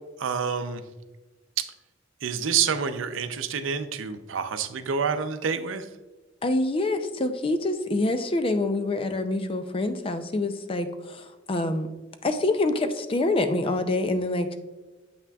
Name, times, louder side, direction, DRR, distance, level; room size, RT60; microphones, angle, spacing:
voice 1, 0.2-0.8 1.6-1.7 2.2-5.9, right 6 dB, 85° right, 9 dB, 0.5 m, -28 dB
voice 2, 6.4-11.9 12.2-14.6, left 2 dB, 30° left, 9 dB, 0.4 m, -26 dB
8.0 x 5.8 x 2.3 m, 1.2 s
head